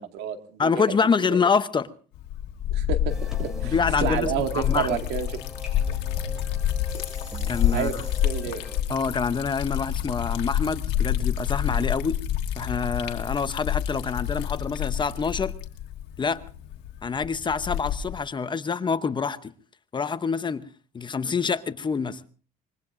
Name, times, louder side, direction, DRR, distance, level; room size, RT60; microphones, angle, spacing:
voice 1, 0.0-0.8 1.3-1.4 2.7-5.3 7.7-7.9 8.2-8.6, right 8 dB, 90° right, 2.0 m, -30 dB
voice 2, 0.6-1.9 3.6-5.0 7.5-8.0 8.9-12.2 12.6-15.5 16.2-16.4 17.0-19.5 19.9-20.7 20.9-22.2, left 5 dB, 25° left, 0.8 m, -26 dB
Liquid, 2.1-18.2, left 10 dB, 90° left, 1.6 m, -28 dB
sound 1, 3.1-8.8, equal, 5° right, 6.8 m, -42 dB
24.5 x 21.5 x 2.6 m
cardioid pair, 110°, 17 cm